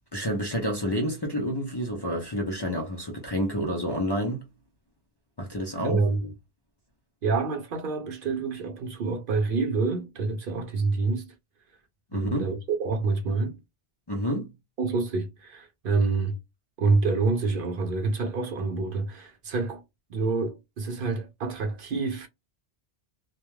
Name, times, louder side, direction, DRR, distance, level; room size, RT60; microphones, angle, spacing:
voice 1, 0.1-4.5 5.4-6.1 12.1-12.5 14.1-14.5, equal, 30° left, 0.5 m, -29 dB
voice 2, 5.8-6.3 7.2-11.4 12.1-13.6 14.8-16.4 16.8-19.8 20.1-22.3, right 4 dB, 65° right, 0.7 m, -27 dB
2.2 x 2.2 x 3.0 m
omnidirectional pair, 1.1 m